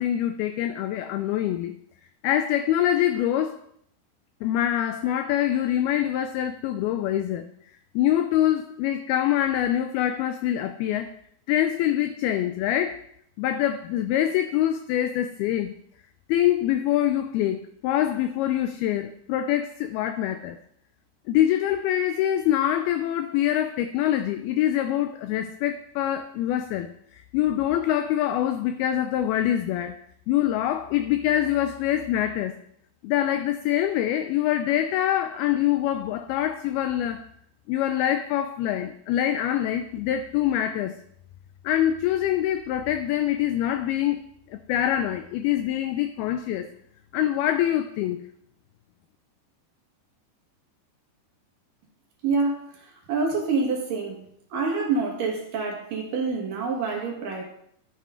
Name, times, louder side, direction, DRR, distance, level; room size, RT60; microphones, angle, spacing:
voice 1, 0.0-1.8 2.2-3.6 4.4-7.5 8.0-11.1 11.5-13.0 13.4-15.7 16.3-20.6 21.3-29.9 30.3-32.5 33.0-37.2 37.7-41.0 41.6-44.2 44.5-46.7 47.1-48.2, left 11 dB, 90° left, 9 dB, 2.2 m, -25 dB
voice 2, 52.2-52.7 53.1-54.2 54.5-57.4, right 4 dB, 60° right, 0 dB, 2.9 m, -26 dB
12.0 x 8.3 x 3.7 m, 0.72 s
omnidirectional pair, 5.0 m